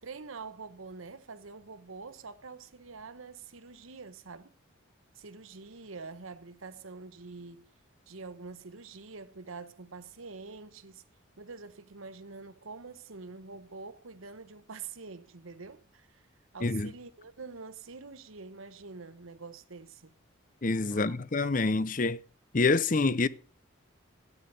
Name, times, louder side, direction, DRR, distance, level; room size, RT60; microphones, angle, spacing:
voice 1, 0.0-4.5 5.1-7.7 8.1-11.0 11.4-16.3 16.5-20.1 20.9-21.2, right 4 dB, 85° right, 1.1 m, -46 dB
voice 2, 16.6-16.9 20.6-22.2 22.5-23.3, left 3 dB, 40° left, 0.6 m, -26 dB
14.0 x 9.6 x 6.7 m
head